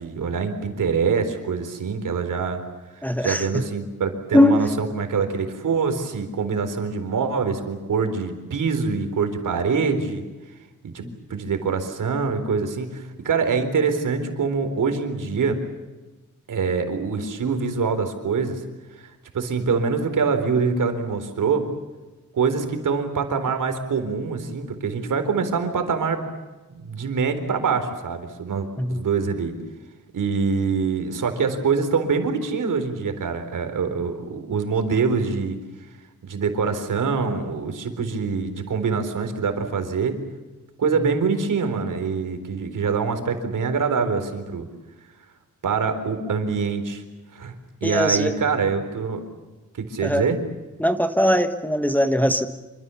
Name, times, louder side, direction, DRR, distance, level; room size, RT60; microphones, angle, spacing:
voice 1, 0.0-2.6 2.9-10.2 10.9-11.0 11.3-15.6 16.5-18.6 19.0-21.7 22.3-26.3 26.7-29.5 30.1-35.6 36.2-40.1 40.8-44.7 45.6-47.0 47.3-47.5 47.8-49.2 49.7-50.4, right 5 dB, 85° right, 7 dB, 4.1 m, -24 dB
voice 2, 3.0-3.6 4.3-4.6 11.0-11.1 28.8-29.0 47.8-48.3 50.0-50.2 50.8-52.5, left 1 dB, 5° left, 8 dB, 1.3 m, -20 dB
27.0 x 25.5 x 7.1 m, 1.2 s
wide cardioid pair, 165°, 31 cm